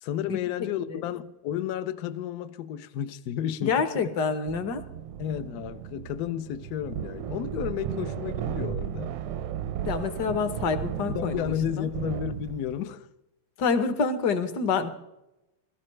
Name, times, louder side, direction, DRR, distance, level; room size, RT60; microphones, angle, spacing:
voice 1, 0.0-4.1 5.2-9.1 11.1-13.1, left 10 dB, 90° left, 0.8 m, -32 dB
voice 2, 0.6-1.1 3.6-4.8 9.8-11.9 13.6-14.9, left 5 dB, 60° left, 1.4 m, -27 dB
sound 1, 4.5-12.8, right 10 dB, 85° right, 1.5 m, -35 dB
17.0 x 13.5 x 3.2 m
omnidirectional pair, 2.3 m